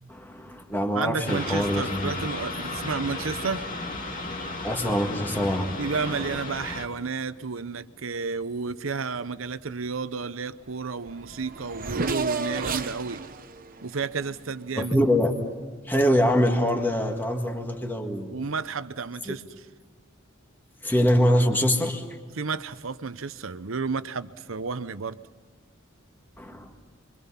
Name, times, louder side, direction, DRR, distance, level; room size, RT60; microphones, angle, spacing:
voice 1, 0.1-2.1 4.6-5.7 14.8-15.3 15.8-18.3 19.3-19.4 20.8-22.0 26.4-26.7, equal, 10° left, 2 dB, 1.9 m, -24 dB
voice 2, 0.9-3.7 5.8-13.3 13.8-15.0 18.3-19.4 22.3-25.2, right 4 dB, 75° right, 13 dB, 0.8 m, -31 dB
sound 1, 1.3-6.9, left 2 dB, 45° left, 2.4 m, -34 dB
Race car auto racing / Accelerating revving vroom, 10.7-10.8 11.0-15.0, right 4 dB, 45° right, 1.0 m, -33 dB
28.5 x 24.0 x 5.8 m, 1.5 s
head